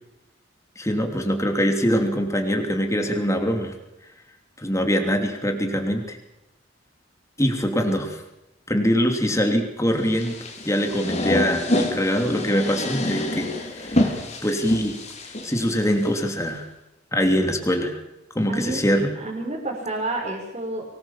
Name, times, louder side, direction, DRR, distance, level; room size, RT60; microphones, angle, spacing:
voice 1, 0.8-3.7 4.6-6.2 7.4-8.2 8.7-10.4 10.6-15.0 15.4-16.6 17.1-18.0 18.3-19.1, equal, 15° left, 4 dB, 3.0 m, -23 dB
sound 1, 10.1-16.2, left 1 dB, 40° left, 3.9 m, -27 dB
voice 2, 18.5-18.9 19.1-20.8, right 2 dB, 35° right, -4 dB, 5.1 m, -29 dB
25.0 x 20.0 x 7.4 m, 0.89 s
head